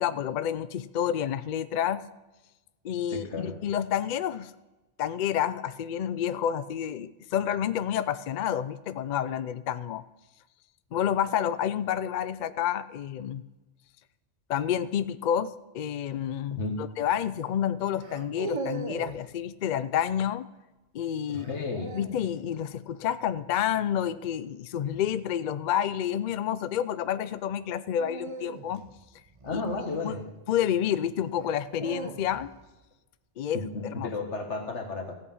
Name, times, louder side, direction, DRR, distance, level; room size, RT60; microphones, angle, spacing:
voice 1, 0.0-2.0 2.8-4.5 5.0-10.0 10.9-13.4 14.5-20.5 20.9-21.5 21.9-28.8 29.5-29.6 30.0-30.1 30.5-32.5 33.4-34.1, left 9 dB, 60° left, 14 dB, 0.5 m, -29 dB
voice 2, 3.1-3.6 16.5-16.9 21.3-22.0 29.4-30.3 33.5-35.1, left 3 dB, 75° left, 3 dB, 1.9 m, -33 dB
sound 1, 16.1-16.5 18.0-19.2 21.3-22.3 24.8-25.2 27.9-30.3 31.4-32.7, right 3 dB, 30° right, 0.7 m, -40 dB
15.5 x 8.2 x 5.5 m, 1.1 s
omnidirectional pair, 1.2 m